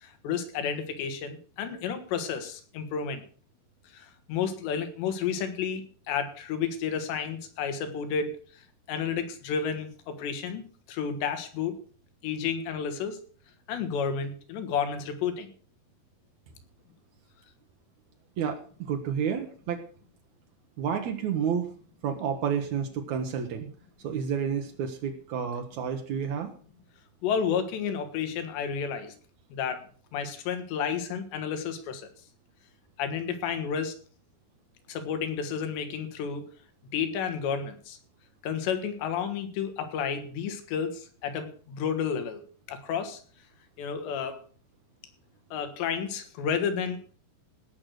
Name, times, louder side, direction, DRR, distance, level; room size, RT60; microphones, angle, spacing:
voice 1, 0.0-3.2 3.9-5.8 6.1-8.4 8.9-10.6 10.9-11.7 12.2-13.2 13.7-15.5 27.2-29.1 29.5-29.8 30.1-32.1 33.0-33.9 34.9-36.5 36.9-38.0 38.4-42.4 42.7-43.2 43.8-44.4 45.5-47.2, left 7 dB, 85° left, 8 dB, 3.8 m, -31 dB
voice 2, 18.9-19.8 20.8-21.7 22.0-23.7 24.0-26.5, right 7 dB, 80° right, 4 dB, 1.6 m, -30 dB
17.5 x 6.4 x 6.5 m, 0.43 s
omnidirectional pair, 4.9 m